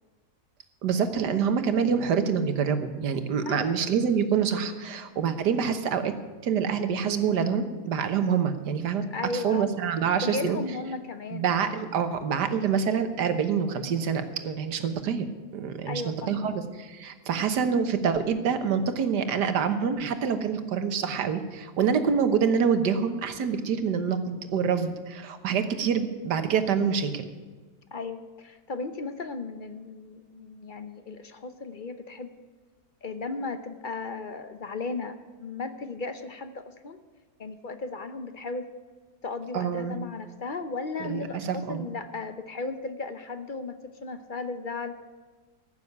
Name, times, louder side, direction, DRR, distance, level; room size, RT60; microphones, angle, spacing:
voice 1, 0.8-6.1 6.4-9.0 9.3-10.6 11.3-15.2 15.5-27.3 39.5-40.0 41.0-41.9, right 6 dB, 75° right, 9 dB, 1.7 m, -26 dB
voice 2, 3.4-3.8 9.1-9.7 10.2-11.5 15.9-16.6 27.9-32.3 33.0-37.0 37.4-38.7 39.2-45.0, left 3 dB, 45° left, 10 dB, 0.7 m, -35 dB
14.5 x 7.0 x 9.6 m, 1.4 s
omnidirectional pair, 1.8 m